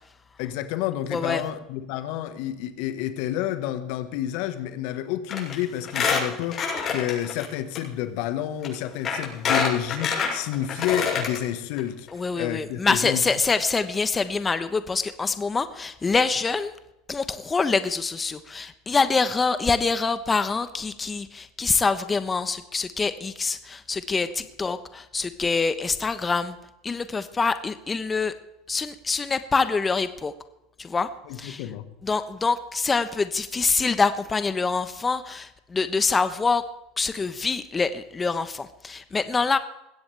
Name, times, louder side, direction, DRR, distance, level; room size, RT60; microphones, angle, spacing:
voice 1, 0.4-12.1 12.3-13.2 31.3-31.9, left 12 dB, 65° left, 10 dB, 1.4 m, -29 dB
voice 2, 1.1-1.4 12.1-16.7 17.1-26.6 26.8-28.3 28.7-30.3 30.8-31.1 31.3-31.7 32.0-36.6 37.0-39.6, left 4 dB, 20° left, 11 dB, 1.0 m, -25 dB
Squeak, 5.3-5.5 5.8-7.4 7.7-7.8 8.6-8.7 9.0-11.4 11.8-11.9 12.1-12.2, left 6 dB, 40° left, 7.3 m, -26 dB
21.0 x 16.5 x 3.4 m, 0.90 s
hypercardioid pair, 80°, 0 cm